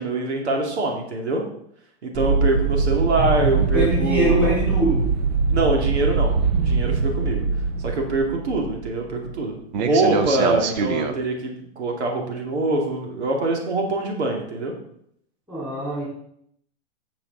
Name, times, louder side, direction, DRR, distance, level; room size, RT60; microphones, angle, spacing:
voice 1, 0.0-1.4 2.0-4.5 5.5-7.4 7.8-14.7, right 2 dB, 85° right, 1 dB, 2.6 m, -24 dB
sound 1, 2.1-9.4 9.7-11.1, right 5 dB, 40° right, 0.8 m, -23 dB
voice 2, 3.7-5.1 15.5-16.1, right 1 dB, 5° right, -8 dB, 4.3 m, -23 dB
12.0 x 6.9 x 4.0 m, 0.72 s
supercardioid pair, 170°, 33 cm